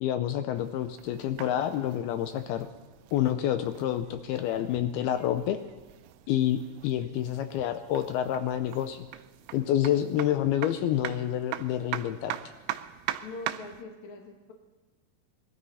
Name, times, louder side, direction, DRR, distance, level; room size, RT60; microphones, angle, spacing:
voice 1, 0.0-2.7 3.1-5.6 6.3-9.1 9.5-12.4, left 11 dB, 80° left, 9 dB, 2.4 m, -28 dB
sound 1, 0.5-13.8, right 13 dB, 80° right, 2.4 m, -42 dB
voice 2, 13.2-14.5, left 3 dB, 55° left, 1 dB, 2.4 m, -42 dB
20.0 x 12.5 x 4.2 m, 1.3 s
omnidirectional pair, 4.8 m